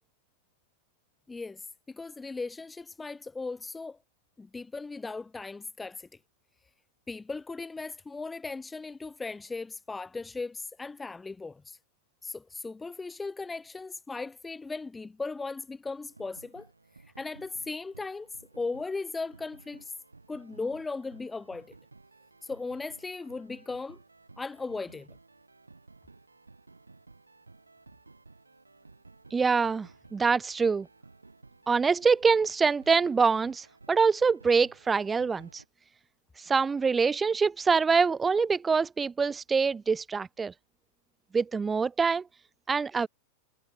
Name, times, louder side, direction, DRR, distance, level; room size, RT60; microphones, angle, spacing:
voice 1, 1.3-4.0 4.4-6.1 7.1-11.8 12.2-16.7 17.0-18.3 18.5-19.9 20.3-21.7 22.4-24.0 24.4-25.1, left 3 dB, 10° left, 1.3 m, -37 dB
sound 1, 16.0-35.7, right 3 dB, 80° right, 7.9 m, -56 dB
voice 2, 29.3-30.9 31.7-35.6 36.4-40.5 41.3-42.2 42.7-43.1, right 5 dB, 15° right, 2.8 m, -25 dB
figure-of-eight pair, 90°, 0 cm